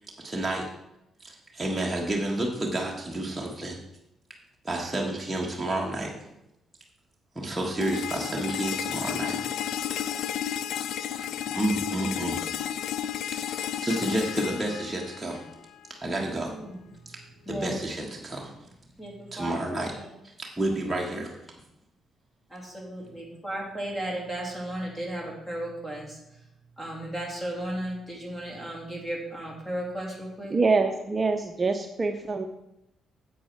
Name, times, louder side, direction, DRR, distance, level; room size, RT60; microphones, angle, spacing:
voice 1, 0.2-0.7 1.2-3.8 4.6-6.1 7.3-9.4 9.9-10.1 11.0-12.5 13.3-15.4 15.9-16.5 17.5-18.5 19.3-19.9 20.4-21.4, right 1 dB, 10° right, -3 dB, 1.5 m, -30 dB
sound 1, 7.8-15.8, left 10 dB, 80° left, 0.4 m, -32 dB
voice 2, 16.0-17.2 17.4-17.8 19.0-20.1 22.5-26.5 26.8-30.9, right 1 dB, 15° left, -1 dB, 2.6 m, -35 dB
voice 3, 30.5-32.5, right 3 dB, 30° right, 5 dB, 0.7 m, -25 dB
8.5 x 8.0 x 4.5 m, 0.87 s
cardioid pair, 90°, 0 cm